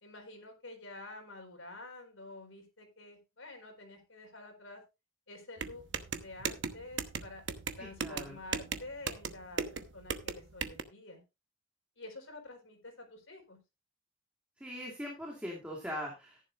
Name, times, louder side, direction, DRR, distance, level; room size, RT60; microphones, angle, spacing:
voice 1, 0.0-4.8 5.3-5.8 6.2-7.4 7.7-11.2 12.0-13.6, left 2 dB, 75° left, 3 dB, 4.3 m, -49 dB
sound 1, 5.6-10.8, right 5 dB, 65° right, 1.0 m, -38 dB
voice 2, 7.8-8.4 14.6-16.4, equal, 5° right, -2 dB, 2.5 m, -41 dB
14.5 x 10.5 x 2.5 m, 0.25 s
head